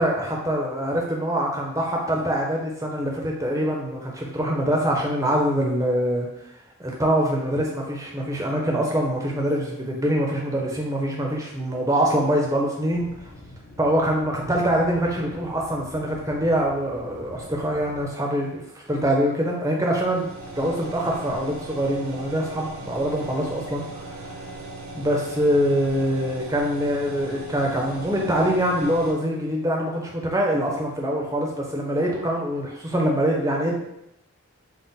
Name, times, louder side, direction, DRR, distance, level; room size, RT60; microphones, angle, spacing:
voice 1, 0.0-6.3 6.8-13.1 13.8-18.6 18.9-20.3 20.5-24.3 24.9-33.8, equal, 15° right, -1 dB, 0.5 m, -24 dB
sound 1, 12.9-18.1, left 1 dB, 40° left, 0.5 m, -45 dB
sound 2, 20.0-29.1, right 2 dB, 85° right, 0.7 m, -38 dB
3.6 x 2.0 x 4.0 m, 0.84 s
head